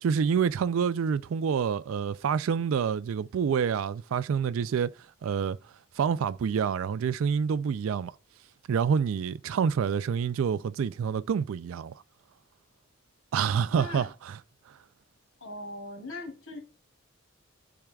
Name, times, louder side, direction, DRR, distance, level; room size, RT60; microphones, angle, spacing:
voice 1, 0.0-4.9 5.2-5.6 6.0-8.1 8.7-12.0 13.3-14.4, right 7 dB, 75° right, 0.3 m, -27 dB
voice 2, 13.7-14.1 15.4-16.6, left 2 dB, 80° left, 2.8 m, -40 dB
12.0 x 4.8 x 2.3 m
head